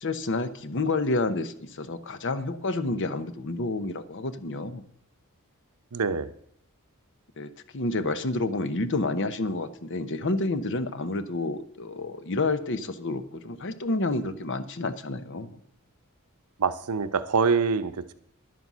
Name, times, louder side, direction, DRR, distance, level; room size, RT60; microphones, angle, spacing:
voice 1, 0.0-4.8 7.4-15.6, left 2 dB, 55° left, 12 dB, 0.9 m, -29 dB
voice 2, 5.9-6.3 16.6-18.1, right 5 dB, 90° right, 12 dB, 0.8 m, -25 dB
11.0 x 9.6 x 6.2 m, 0.69 s
head